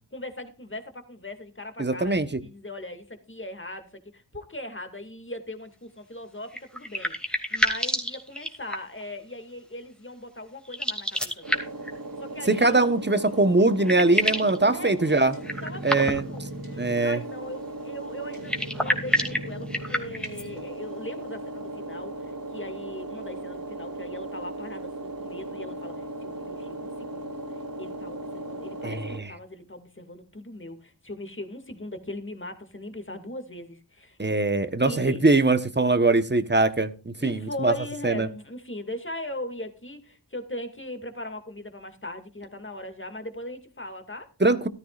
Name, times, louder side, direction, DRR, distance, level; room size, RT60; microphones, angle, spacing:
voice 1, 0.1-11.7 12.2-12.8 14.7-16.4 16.7-34.2 34.8-35.2 37.2-44.3, left 1 dB, 30° left, 7 dB, 2.3 m, -39 dB
voice 2, 1.8-2.3 12.5-15.3 15.8-16.2 16.8-17.2 28.8-29.3 34.2-37.7 38.0-38.3 44.4-44.7, right 2 dB, 25° right, 11 dB, 1.1 m, -22 dB
sound 1, 6.5-9.0 10.6-11.9 13.3-13.4 13.6-14.6 15.4-16.4 18.3-20.5, equal, ahead, 2.6 m, -28 dB
sound 2, 11.4-29.2, right 1 dB, 55° right, 3.2 m, -37 dB
14.5 x 13.0 x 2.5 m, 0.31 s
wide cardioid pair, 45°, 43 cm